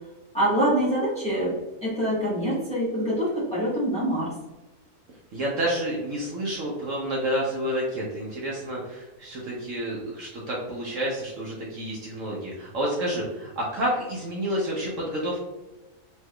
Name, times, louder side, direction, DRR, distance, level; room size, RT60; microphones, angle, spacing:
voice 1, 0.3-1.5 1.8-4.3, equal, 5° left, -8 dB, 0.9 m, -25 dB
voice 2, 5.3-15.4, right 1 dB, 60° right, -4 dB, 0.9 m, -29 dB
3.3 x 3.1 x 2.2 m, 1.1 s
omnidirectional pair, 1.7 m